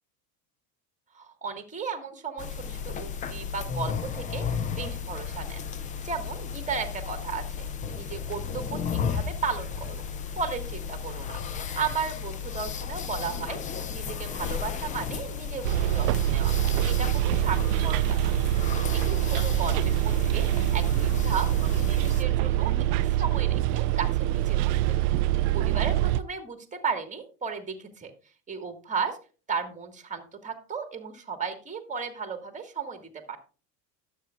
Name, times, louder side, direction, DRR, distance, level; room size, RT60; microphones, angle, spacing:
voice 1, 1.1-4.5 4.8-5.6 6.0-7.7 7.9-10.0 10.4-11.4 11.8-13.6 13.9-16.5 16.9-18.4 18.9-24.8 25.5-28.1 28.5-29.2 29.5-33.0 33.3-33.4, right 5 dB, 15° right, 7 dB, 1.8 m, -35 dB
sound 1, 2.4-22.2, left 6 dB, 20° left, 0.3 m, -34 dB
Bus, 15.6-26.2, right 14 dB, 70° right, 0.5 m, -25 dB
12.0 x 7.4 x 2.4 m, 0.35 s
hypercardioid pair, 95°, 49 cm